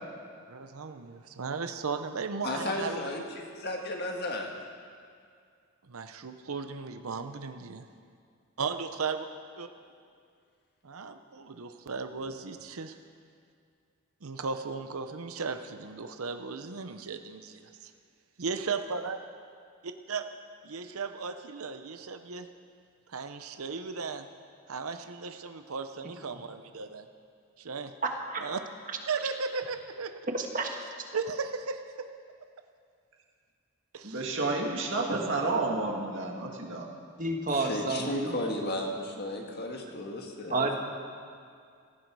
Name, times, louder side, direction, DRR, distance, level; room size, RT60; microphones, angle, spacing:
voice 1, 0.5-3.1 5.9-7.9 8.6-9.3 9.6-9.7 10.8-13.0 14.2-17.9 18.4-19.2 19.8-20.3 20.6-22.5 23.1-24.3 24.7-27.1 27.6-27.9 28.4-28.6 29.1-30.1 31.1-32.1 33.9-34.3, right 4 dB, 85° right, 8 dB, 0.8 m, -36 dB
voice 2, 2.4-4.5 37.5-40.8, left 1 dB, 50° left, 1 dB, 1.8 m, -34 dB
voice 3, 30.3-30.8 37.2-38.3 40.5-40.8, right 2 dB, 40° right, 3 dB, 1.5 m, -30 dB
voice 4, 34.0-36.9, right 3 dB, 60° right, 0 dB, 2.2 m, -30 dB
18.0 x 15.0 x 4.8 m, 2.2 s
head